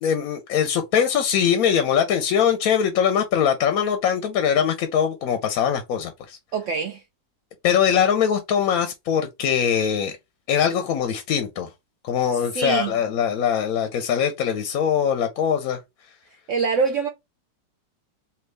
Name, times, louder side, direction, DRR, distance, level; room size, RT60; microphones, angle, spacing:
voice 1, 0.0-6.4 7.6-10.2 10.5-11.7 12.0-15.8, left 8 dB, 65° left, 0.9 m, -22 dB
voice 2, 6.5-7.0 12.5-13.0 16.5-17.1, right 5 dB, 85° right, 0.6 m, -24 dB
3.5 x 2.7 x 3.2 m
omnidirectional pair, 1.9 m